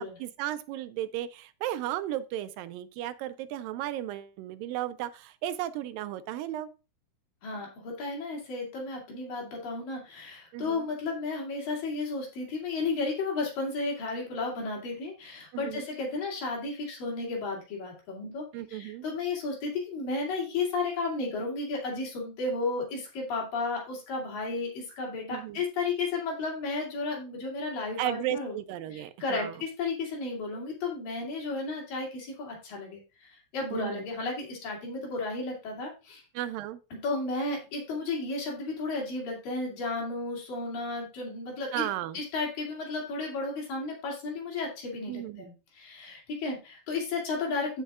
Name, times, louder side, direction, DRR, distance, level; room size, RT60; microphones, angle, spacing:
voice 1, 0.0-6.7 10.5-10.9 15.5-15.9 18.5-19.1 25.3-25.6 28.0-29.6 33.7-34.0 36.3-36.8 41.7-42.2 45.1-45.5, right 13 dB, 90° right, 12 dB, 2.4 m, -35 dB
voice 2, 7.4-28.6 28.9-36.2 36.9-41.8 42.1-47.8, left 3 dB, 80° left, -2 dB, 4.4 m, -33 dB
14.0 x 5.4 x 2.4 m, 0.30 s
omnidirectional pair, 3.9 m